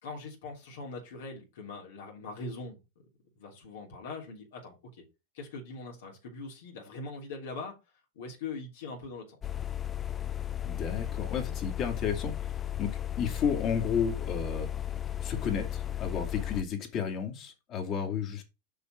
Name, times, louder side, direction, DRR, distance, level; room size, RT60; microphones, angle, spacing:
voice 1, 0.0-2.8 3.4-5.0 5.3-7.7 8.1-9.4, left 3 dB, 75° left, 0 dB, 3.3 m, -42 dB
sound 1, 9.4-16.6, left 11 dB, 25° left, 0.5 m, -35 dB
voice 2, 10.6-12.9 13.2-14.7 15.2-18.4, left 7 dB, 40° left, 2 dB, 2.8 m, -32 dB
6.8 x 5.7 x 4.6 m, 0.26 s
hypercardioid pair, 115°, 0 cm